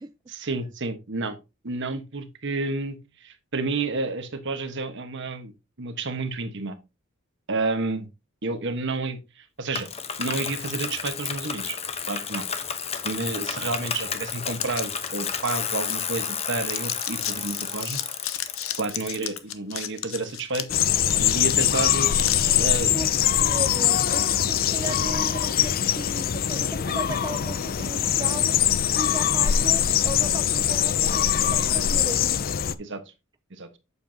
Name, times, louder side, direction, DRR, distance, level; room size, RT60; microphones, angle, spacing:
voice 1, 0.3-1.4 1.6-5.5 5.8-6.8 7.5-8.1 8.4-9.9 10.2-11.8 12.1-12.4 12.9-18.0 18.8-20.7 21.2-22.1 22.6-22.9 32.8-33.0 33.6-33.7, right 3 dB, 60° right, 1.3 m, -30 dB
Bicycle, 9.7-19.4, left 7 dB, 30° left, 0.8 m, -32 dB
sound 1, 14.5-16.4 16.7-22.4, left 12 dB, 80° left, 0.8 m, -34 dB
sound 2, 20.7-32.7, left 10 dB, 45° left, 0.4 m, -23 dB
voice 2, 22.9-32.5, right 2 dB, 20° right, 0.4 m, -36 dB
8.4 x 6.9 x 2.8 m
head